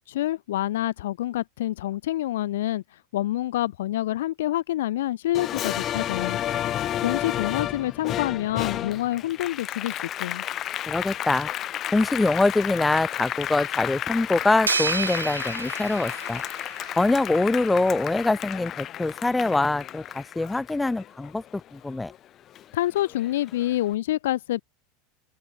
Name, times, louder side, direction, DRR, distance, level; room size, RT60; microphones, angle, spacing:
voice 1, 0.0-2.8 3.1-6.4 7.0-10.5 22.7-24.6, left 14 dB, 70° left, 1.2 m, -27 dB
Applause, 5.3-22.2 22.6-23.7, left 11 dB, 40° left, 1.2 m, -32 dB
voice 2, 10.9-11.5 11.9-16.4 17.0-21.4 21.7-22.1, left 2 dB, 10° left, 2.8 m, -24 dB
sound 1, 14.7-17.2, right 5 dB, 90° right, 2.4 m, -30 dB
open air
hypercardioid pair, 85°, 0 cm